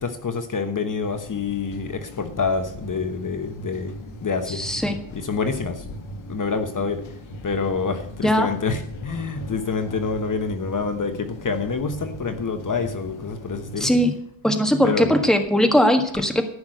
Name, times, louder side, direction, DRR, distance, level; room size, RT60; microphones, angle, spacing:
voice 1, 0.0-3.9 4.2-4.6 5.1-5.9 6.3-7.0 7.4-13.9 14.8-15.2, left 4 dB, 40° left, 1.2 m, -27 dB
sound 1, 1.0-14.1, left 1 dB, 85° left, 1.7 m, -39 dB
voice 2, 4.5-5.0 8.2-8.5 13.8-14.1 14.4-16.4, equal, ahead, 1.6 m, -19 dB
14.5 x 6.1 x 7.8 m
wide cardioid pair, 120°, 46 cm